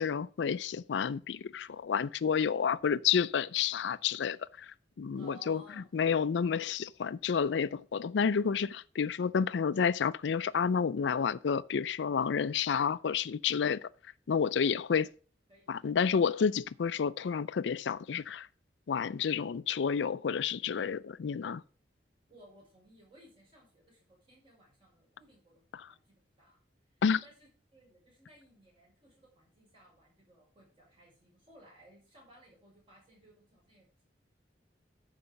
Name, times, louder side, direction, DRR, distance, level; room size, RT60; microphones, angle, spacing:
voice 1, 0.0-4.7 5.0-5.6 5.9-13.9 14.3-15.1 15.7-18.5 18.9-21.6 27.0-27.2, left 6 dB, 80° left, 0.4 m, -30 dB
voice 2, 5.1-5.9 15.5-15.9 21.4-21.6 22.3-26.6 27.2-34.0, right 1 dB, 30° right, 5.5 m, -60 dB
11.5 x 4.8 x 5.2 m
head